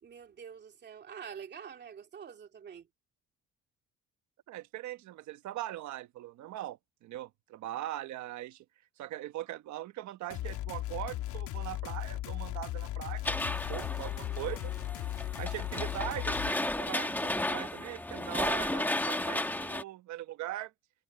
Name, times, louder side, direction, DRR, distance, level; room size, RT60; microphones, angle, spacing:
voice 1, 0.0-2.9, right 7 dB, 35° right, 2.8 m, -46 dB
voice 2, 4.5-8.6 9.0-14.7 15.4-20.7, right 14 dB, 70° right, 1.3 m, -41 dB
sound 1, 10.3-16.5, left 14 dB, 90° left, 3.1 m, -37 dB
sound 2, 13.2-19.8, left 1 dB, 5° left, 1.3 m, -34 dB
cardioid pair, 160°, 30 cm